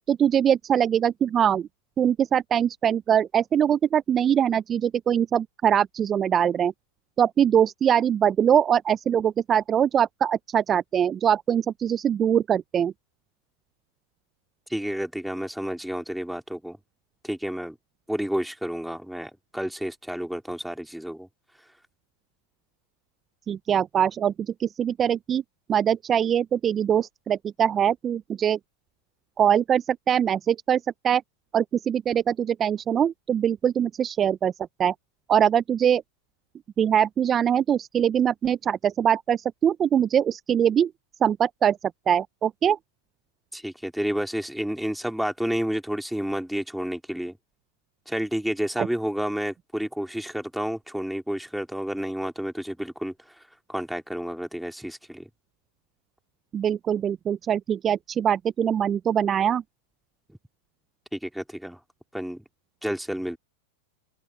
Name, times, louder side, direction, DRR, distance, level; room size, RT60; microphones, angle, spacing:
voice 1, 0.1-1.7 2.0-6.7 7.2-12.9 23.5-25.4 25.7-28.6 29.4-31.2 31.5-34.5 34.8-34.9 35.3-36.0 36.8-40.9 41.2-41.8 42.1-42.8 48.8-48.9 56.5-59.6, right 9 dB, 30° right, 0.5 m, -22 dB
voice 2, 14.7-16.8 17.2-17.8 18.1-21.3 43.5-47.4 48.1-53.3 53.7-55.3 61.1-61.8 62.1-62.4 62.8-63.4, equal, ahead, 3.6 m, -30 dB
hypercardioid pair, 105°, 0 cm